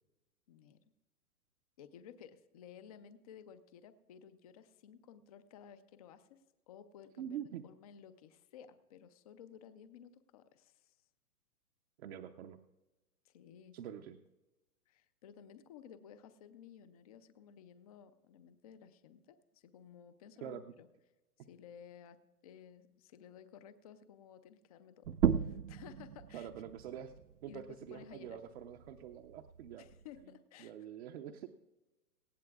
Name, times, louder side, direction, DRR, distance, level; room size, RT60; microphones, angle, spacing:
voice 1, 0.5-0.8 1.8-7.4 7.6-11.0 13.2-13.8 14.9-20.9 21.4-26.5 27.5-28.4 29.8-30.7, left 8 dB, 25° left, 12 dB, 0.4 m, -56 dB
voice 2, 7.2-7.6 12.0-12.6 13.7-14.2 20.4-20.6 21.4-21.5 26.3-27.1 27.4-29.9 30.6-31.5, right 9 dB, 45° right, 4 dB, 0.7 m, -45 dB
sound 1, 25.0-30.3, right 8 dB, 85° right, 0.7 m, -37 dB
18.5 x 15.5 x 2.3 m, 1.1 s
hypercardioid pair, 125°, 46 cm